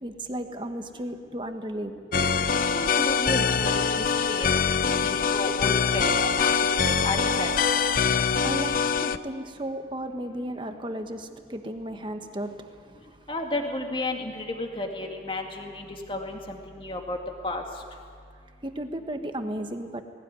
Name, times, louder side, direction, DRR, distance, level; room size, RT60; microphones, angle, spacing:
voice 1, 0.0-2.0 8.4-13.2 18.6-20.0, right 1 dB, 25° right, 6 dB, 1.3 m, -34 dB
sound 1, 2.1-9.2, left 6 dB, 50° left, 0.6 m, -24 dB
voice 2, 2.7-4.6 5.0-6.5 6.9-7.5 13.3-17.2 17.4-17.6, left 2 dB, 30° left, 3 dB, 2.2 m, -32 dB
19.5 x 18.0 x 9.6 m, 2.2 s
head